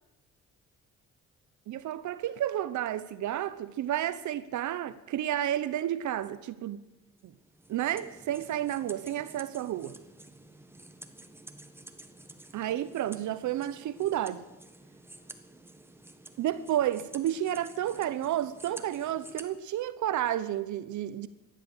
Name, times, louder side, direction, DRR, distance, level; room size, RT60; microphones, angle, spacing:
voice 1, 1.7-6.8 7.2-7.3 7.7-10.0 12.5-14.4 16.4-21.3, right 12 dB, 75° right, 0.8 m, -31 dB
sound 1, 7.2-19.5, right 1 dB, 10° right, 1.5 m, -51 dB
14.5 x 11.0 x 7.8 m
cardioid pair, 90°, 30 cm